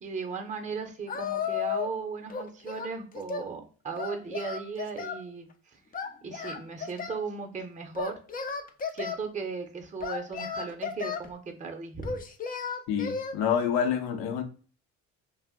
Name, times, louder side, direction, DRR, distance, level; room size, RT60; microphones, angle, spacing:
voice 1, 0.0-5.5 6.2-8.1 8.9-12.2, right 5 dB, 20° right, 0.7 m, -37 dB
Singing, 1.1-2.0 2.3-3.5 4.0-5.2 5.9-7.2 7.9-9.2 10.0-11.3 12.0-13.4, left 6 dB, 25° left, 0.4 m, -34 dB
voice 2, 12.9-14.4, left 7 dB, 70° left, 0.7 m, -27 dB
2.5 x 2.0 x 3.6 m
supercardioid pair, 70°, 39 cm